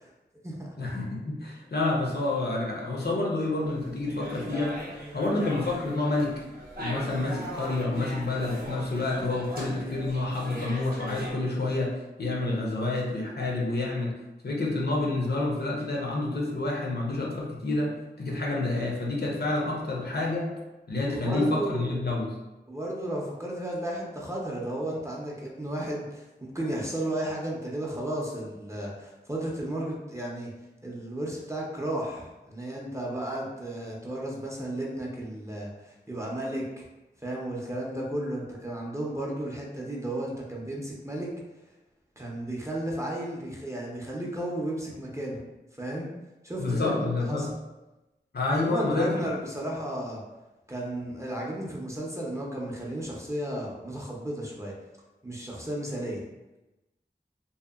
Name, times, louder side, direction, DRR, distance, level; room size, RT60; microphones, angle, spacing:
voice 1, 0.8-4.8 5.1-6.3 6.8-14.1 14.4-20.5 20.9-22.3 46.6-47.5 48.3-49.2, left 2 dB, 65° left, -3 dB, 0.6 m, -28 dB
sound 1, 3.6-11.3, equal, 55° right, 0.7 m, -40 dB
voice 2, 21.1-22.1 22.7-30.5 30.8-36.9 37.2-41.3 42.2-45.4 45.8-46.1 46.4-47.5 48.6-50.2 50.7-54.7 55.2-56.2, right 1 dB, 15° right, -3 dB, 0.5 m, -33 dB
2.7 x 2.1 x 2.3 m, 1.0 s
wide cardioid pair, 55°, 18 cm